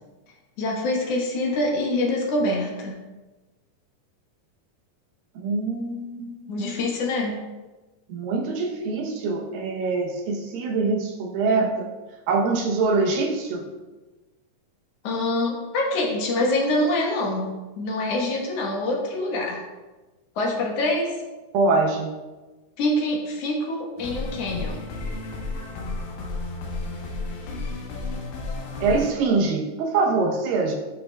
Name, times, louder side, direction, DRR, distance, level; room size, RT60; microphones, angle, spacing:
voice 1, 0.6-3.0 6.5-7.4 15.0-19.7 20.4-21.2 22.8-24.8, left 1 dB, 60° left, -1 dB, 1.9 m, -25 dB
voice 2, 5.4-6.4 8.1-11.9 12.3-13.6 21.5-22.1 28.8-30.8, right 3 dB, 90° right, 2 dB, 2.6 m, -24 dB
sound 1, 24.0-29.1, left 2 dB, 75° left, 2.6 m, -32 dB
11.5 x 5.6 x 2.2 m, 1.2 s
omnidirectional pair, 3.9 m